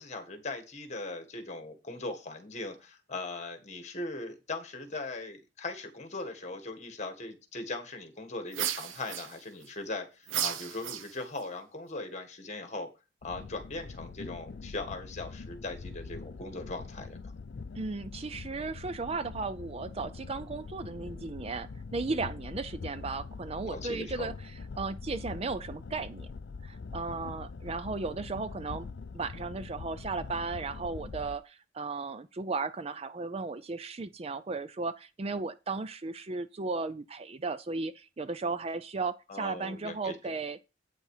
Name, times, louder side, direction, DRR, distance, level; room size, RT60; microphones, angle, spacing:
voice 1, 0.0-12.9 13.2-17.3 23.0-23.1 23.7-24.3 39.3-40.3, left 2 dB, 35° left, 1.8 m, -39 dB
sound 1, 8.5-9.7 10.3-11.4, right 10 dB, 90° right, 0.8 m, -34 dB
sound 2, 13.2-31.4, left 4 dB, 60° left, 0.5 m, -43 dB
voice 2, 17.8-24.3 24.8-26.3 26.6-40.6, right 3 dB, 30° right, 0.4 m, -35 dB
8.8 x 6.3 x 4.9 m
head